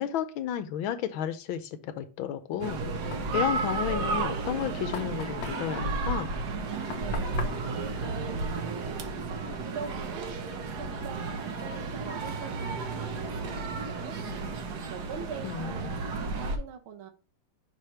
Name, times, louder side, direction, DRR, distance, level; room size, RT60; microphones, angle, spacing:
voice 1, 0.0-2.8 3.3-6.4 15.4-16.0, left 10 dB, 75° left, 11 dB, 1.4 m, -32 dB
Knock, 2.6-9.0, left 7 dB, 60° left, 1.1 m, -43 dB
sound 1, 2.6-16.6, right 3 dB, 60° right, 1.3 m, -33 dB
voice 2, 7.0-14.2 14.9-15.9 16.2-17.1, right 7 dB, 80° right, 5 dB, 1.8 m, -43 dB
6.0 x 3.3 x 5.6 m, 0.35 s
omnidirectional pair, 2.3 m